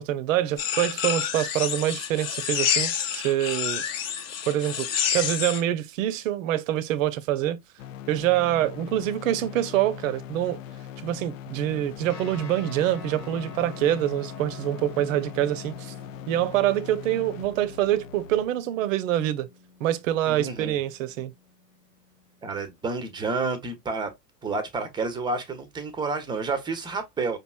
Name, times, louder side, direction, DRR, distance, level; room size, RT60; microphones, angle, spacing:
voice 1, 0.0-3.8 4.5-7.6 8.1-10.6 11.0-15.9 16.3-19.5 19.8-21.3, right 12 dB, 50° right, 0.7 m, -25 dB
sound 1, 0.6-5.6, left 8 dB, 35° left, 0.8 m, -28 dB
sound 2, 7.8-18.5, left 10 dB, 55° left, 0.5 m, -41 dB
sound 3, 12.1-23.0, left 3 dB, 80° left, 1.6 m, -47 dB
voice 2, 20.3-20.8 22.4-24.1 24.4-27.4, right 3 dB, 10° right, 0.7 m, -30 dB
5.2 x 3.0 x 2.2 m
hypercardioid pair, 105°, 50 cm